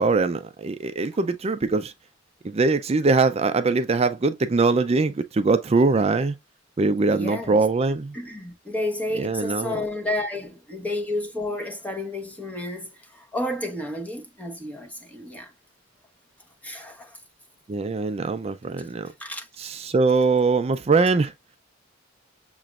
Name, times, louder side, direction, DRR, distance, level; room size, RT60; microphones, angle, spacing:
voice 1, 0.0-1.9 2.4-6.3 6.8-8.1 9.1-9.8 17.7-19.1 19.6-21.3, right 3 dB, 30° right, 0.4 m, -22 dB
voice 2, 7.1-7.6 8.1-15.5 16.6-17.2 19.2-19.5, left 1 dB, 10° left, 1.0 m, -31 dB
6.7 x 3.1 x 2.4 m
head